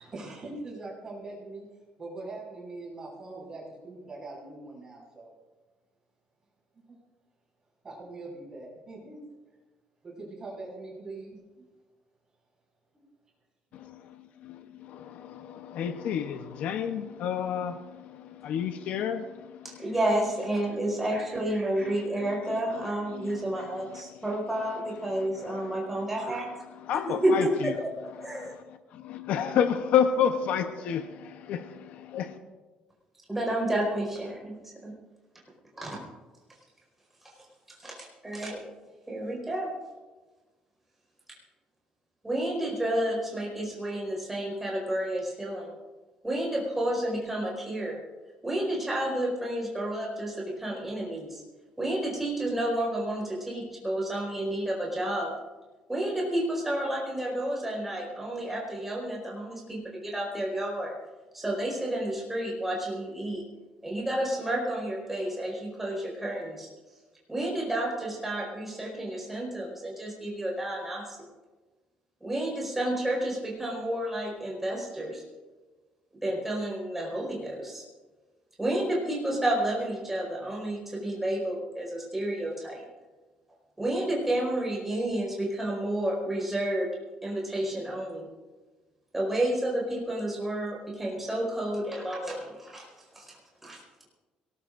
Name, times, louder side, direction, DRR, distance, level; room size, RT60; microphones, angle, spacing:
voice 1, 0.0-1.7 2.0-5.3 6.9-7.0 7.8-9.2 10.0-11.6, right 2 dB, 25° right, 5.6 m, -42 dB
voice 2, 15.6-19.6 23.1-23.4 23.9-24.0 25.5-25.7 26.9-27.7 28.4-28.5 29.3-32.4, left 8 dB, 60° left, 0.8 m, -29 dB
voice 3, 19.6-26.5 26.9-27.9 28.2-28.5 33.3-34.9 35.8-36.0 37.7-38.6 39.1-39.7 42.2-45.7 46.2-48.0 48.4-51.4 51.8-55.3 55.9-60.9 61.3-63.4 63.8-66.7 67.3-71.2 72.2-75.2 76.2-77.8 78.6-82.8 83.8-86.9 87.2-88.3 89.1-93.4 93.6-93.8, right 1 dB, 10° right, 4.8 m, -30 dB
22.5 x 19.0 x 2.6 m
cardioid pair, 170°, 3 cm